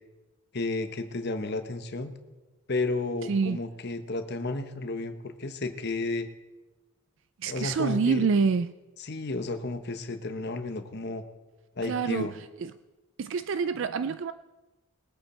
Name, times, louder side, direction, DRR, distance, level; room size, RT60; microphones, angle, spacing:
voice 1, 0.5-2.1 2.7-6.3 7.5-8.3 9.0-11.2 11.8-12.4, left 2 dB, 45° left, 8 dB, 1.0 m, -32 dB
voice 2, 7.4-8.7 11.8-12.3 12.6-12.7 13.2-14.3, right 5 dB, 55° right, 12 dB, 0.3 m, -26 dB
21.0 x 8.7 x 4.3 m, 1.2 s
head